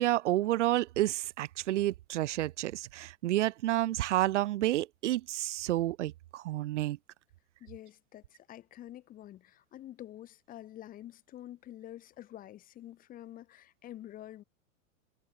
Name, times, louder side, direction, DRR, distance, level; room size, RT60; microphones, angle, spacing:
voice 1, 0.0-7.0, right 15 dB, 55° right, 0.9 m, -30 dB
voice 2, 7.6-14.4, left 13 dB, 20° left, 6.4 m, -48 dB
supercardioid pair, 175°, 42 cm